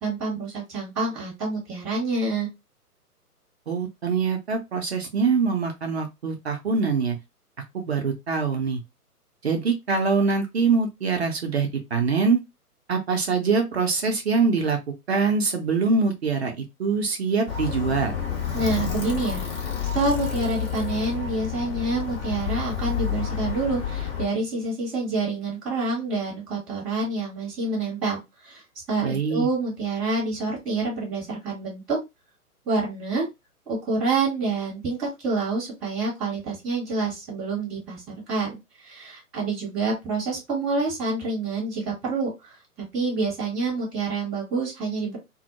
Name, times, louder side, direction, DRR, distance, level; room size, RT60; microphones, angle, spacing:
voice 1, 0.0-2.5 18.5-19.4 19.9-28.6 28.9-32.0 32.7-33.3 33.7-42.6 42.9-45.2, right 3 dB, ahead, 0.5 m, -27 dB
voice 2, 3.7-7.2 7.7-8.8 9.4-12.4 12.9-14.8 15.1-18.2 29.0-29.5, right 4 dB, 45° right, 0.6 m, -24 dB
Alarm, 17.5-24.3, left 8 dB, 40° left, 0.9 m, -29 dB
2.2 x 2.0 x 2.8 m
figure-of-eight pair, 130°, 46 cm